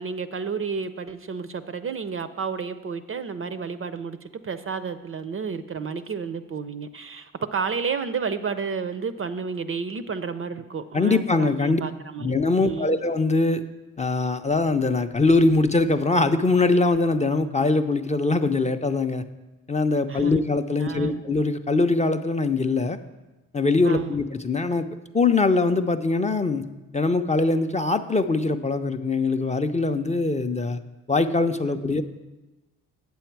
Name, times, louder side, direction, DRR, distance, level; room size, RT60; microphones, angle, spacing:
voice 1, 0.0-12.3 12.6-12.9 20.1-20.4 20.8-21.2 23.8-24.2 31.7-31.9, right 5 dB, 35° right, 13 dB, 0.5 m, -31 dB
voice 2, 10.9-11.8 12.2-13.6 14.0-19.2 19.7-23.0 23.5-24.9 25.1-26.6 26.9-30.8 31.1-32.0, left 3 dB, 20° left, 7 dB, 0.5 m, -22 dB
8.5 x 7.1 x 4.6 m, 1.1 s
supercardioid pair, 50°, 38 cm